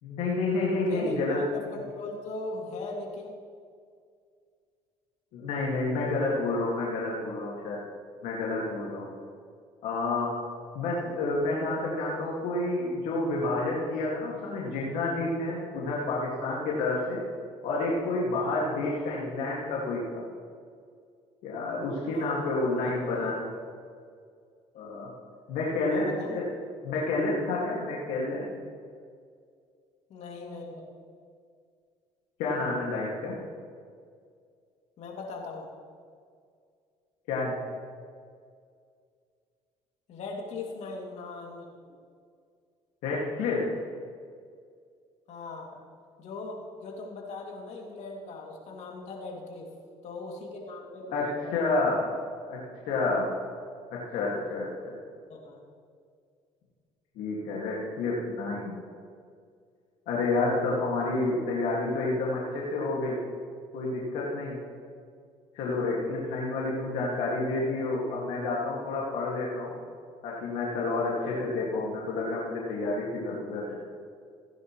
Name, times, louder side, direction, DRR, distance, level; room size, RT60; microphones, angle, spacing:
voice 1, 0.0-1.4 5.3-7.8 8.2-9.1 9.8-10.3 10.7-17.2 17.6-20.2 21.4-23.3 24.7-25.1 25.5-26.5 26.8-28.6 32.4-33.4 37.3-37.6 43.0-43.7 51.1-52.1 52.5-52.6 52.9-53.3 53.9-55.0 57.2-58.8 60.1-63.2 63.7-64.6 65.5-69.7 70.2-73.7, left 2 dB, 80° left, -4 dB, 2.2 m, -29 dB
voice 2, 0.8-3.3 22.1-22.5 22.8-23.1 25.8-26.4 30.1-30.8 35.0-35.7 40.1-41.6 45.3-45.7 46.2-49.7 50.0-51.7 55.3-55.6 61.1-61.4, left 3 dB, 65° left, -1 dB, 2.7 m, -39 dB
16.5 x 10.0 x 3.2 m, 2.1 s
supercardioid pair, 80°, 13 cm